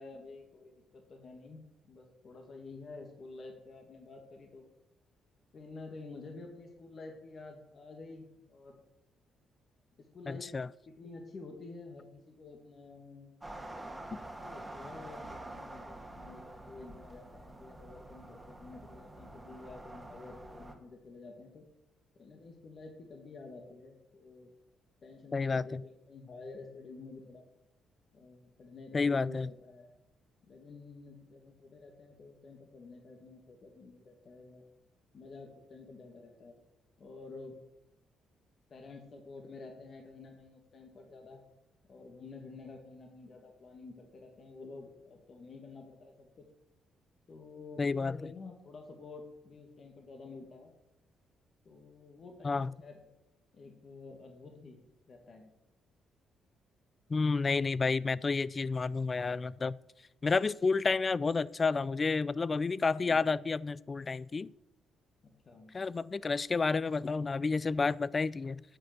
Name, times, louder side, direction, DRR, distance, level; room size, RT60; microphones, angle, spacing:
voice 1, 0.0-4.6 5.5-8.8 10.1-10.5 10.9-13.6 14.4-21.7 22.2-24.5 25.0-27.4 28.1-29.9 30.4-34.6 35.1-36.6 37.0-37.6 38.7-41.4 41.9-46.4 47.3-50.7 51.7-53.0 53.5-54.8 55.1-55.5 65.2-65.7, left 3 dB, 50° left, 2.1 m, -50 dB
voice 2, 10.3-10.7 14.1-14.2 25.3-25.8 28.9-29.5 47.8-48.3 52.4-52.7 57.1-59.8 60.2-64.5 65.7-68.6, left 4 dB, 30° left, 0.4 m, -30 dB
sound 1, 13.4-20.7, right 1 dB, 15° right, 1.8 m, -47 dB
9.8 x 8.1 x 6.7 m
cardioid pair, 90°, 0 cm